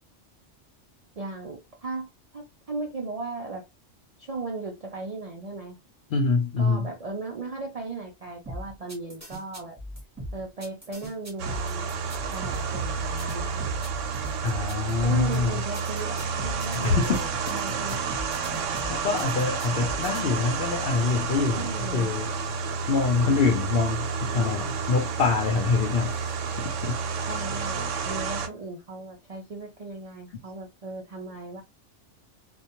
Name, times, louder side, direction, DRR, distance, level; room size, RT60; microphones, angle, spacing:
voice 1, 1.2-2.1 2.3-3.6 4.2-5.8 6.6-9.8 10.3-11.9 12.3-13.7 15.0-18.0 21.6-22.1 27.3-31.6, right 3 dB, 65° right, 0.3 m, -36 dB
voice 2, 6.1-6.9 14.4-15.6 16.7-17.2 18.4-22.3 22.9-26.2 26.6-27.0, left 4 dB, 60° left, 0.7 m, -25 dB
sound 1, 8.4-20.2, equal, 15° right, 0.7 m, -38 dB
sound 2, 11.4-28.5, right 5 dB, 85° right, 0.9 m, -30 dB
2.2 x 2.2 x 2.8 m
omnidirectional pair, 1.2 m